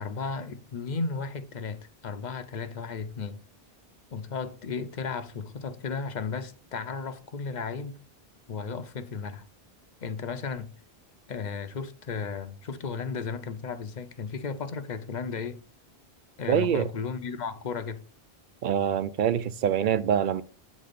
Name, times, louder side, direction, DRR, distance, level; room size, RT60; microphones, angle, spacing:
voice 1, 0.0-3.4 4.1-8.0 8.5-9.4 10.0-10.7 11.3-15.6 16.4-18.0, left 5 dB, 50° left, 0.7 m, -34 dB
voice 2, 16.5-16.9 18.6-20.4, right 9 dB, 60° right, 0.6 m, -25 dB
8.7 x 4.1 x 5.1 m
omnidirectional pair, 1.0 m